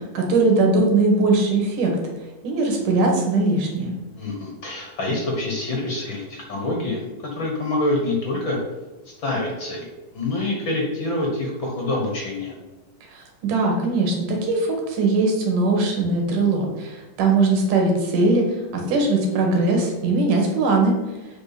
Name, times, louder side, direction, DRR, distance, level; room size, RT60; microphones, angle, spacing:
voice 1, 0.1-1.9 2.4-3.9 13.1-18.4 18.7-20.9, right 3 dB, 85° right, 1 dB, 3.2 m, -20 dB
voice 2, 4.2-8.6 9.2-9.9 10.1-12.5, left 2 dB, 50° left, 0 dB, 1.7 m, -26 dB
7.9 x 4.9 x 5.9 m, 1.1 s
omnidirectional pair, 3.6 m